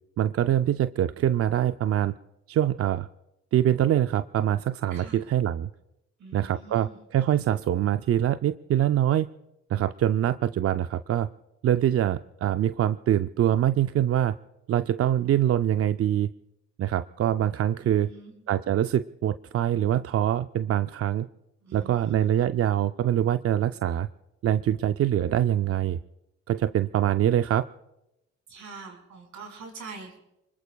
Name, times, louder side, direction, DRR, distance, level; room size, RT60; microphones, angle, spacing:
voice 1, 0.2-2.1 2.5-3.1 3.5-5.7 6.3-9.3 9.7-11.3 11.6-14.4 14.7-16.3 16.8-18.1 18.5-21.3 21.7-24.1 24.4-26.0 26.5-27.7, right 11 dB, 50° right, 11 dB, 0.5 m, -24 dB
voice 2, 4.9-5.2 6.2-7.0 17.8-18.3 21.6-22.3 28.5-30.2, right 4 dB, 70° right, 3 dB, 4.8 m, -44 dB
29.5 x 21.0 x 2.3 m, 0.90 s
cardioid pair, 90°, 30 cm